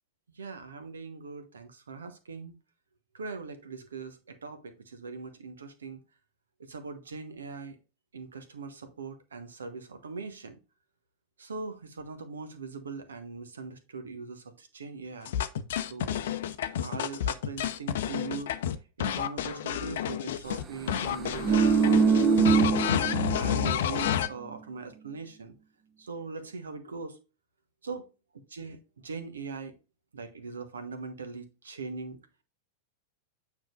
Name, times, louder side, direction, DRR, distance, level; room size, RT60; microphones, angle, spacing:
voice 1, 0.3-2.5 3.1-6.0 6.6-7.8 8.1-10.6 11.4-15.3 15.8-16.2 16.8-18.5 19.0-25.5 26.0-27.2 27.8-28.1 28.5-29.7 30.1-32.2, right 4 dB, 70° right, 1.2 m, -41 dB
sound 1, 15.3-20.6 20.9-24.3, left 10 dB, 60° left, 0.6 m, -30 dB
sound 2, 21.1-23.7 24.0-24.2, right 6 dB, 30° right, 1.0 m, -23 dB
9.1 x 4.8 x 2.6 m
figure-of-eight pair, 90°, 0 cm